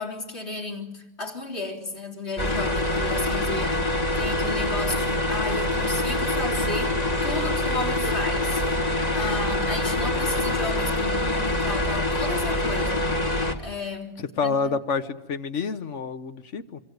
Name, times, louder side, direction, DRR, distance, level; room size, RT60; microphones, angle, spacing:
voice 1, 0.0-6.9 7.2-13.3 13.6-14.8, left 2 dB, 65° left, 4.0 m, -34 dB
sound 1, 2.4-13.5, left 1 dB, 35° left, 2.1 m, -25 dB
voice 2, 14.2-16.8, left 5 dB, 85° left, 1.5 m, -28 dB
26.0 x 23.5 x 8.1 m
omnidirectional pair, 1.2 m